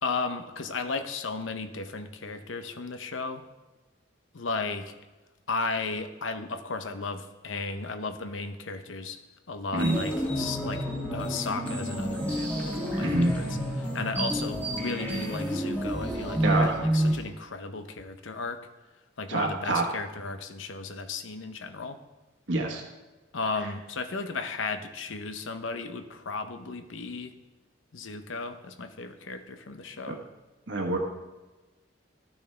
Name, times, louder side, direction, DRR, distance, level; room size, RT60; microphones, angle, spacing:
voice 1, 0.0-3.4 4.3-4.9 5.5-9.2 9.5-18.6 19.2-22.0 23.3-27.3 27.9-30.2, left 4 dB, 80° left, 9 dB, 0.8 m, -35 dB
sound 1, 9.8-17.2, equal, 10° left, 2.2 m, -29 dB
voice 2, 13.0-13.4 16.4-16.8 19.3-19.8 22.5-22.8 30.1-30.2 30.7-31.0, right 2 dB, 70° right, 0 dB, 1.2 m, -26 dB
13.0 x 8.8 x 3.3 m, 1.2 s
head